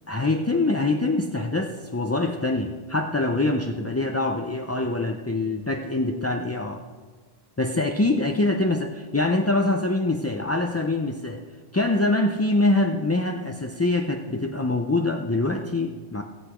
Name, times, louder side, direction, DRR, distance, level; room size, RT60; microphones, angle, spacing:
voice 1, 0.1-6.8 7.6-11.4 11.7-16.2, left 2 dB, 20° left, 3 dB, 0.4 m, -24 dB
17.0 x 7.9 x 5.0 m, 1.5 s
omnidirectional pair, 1.1 m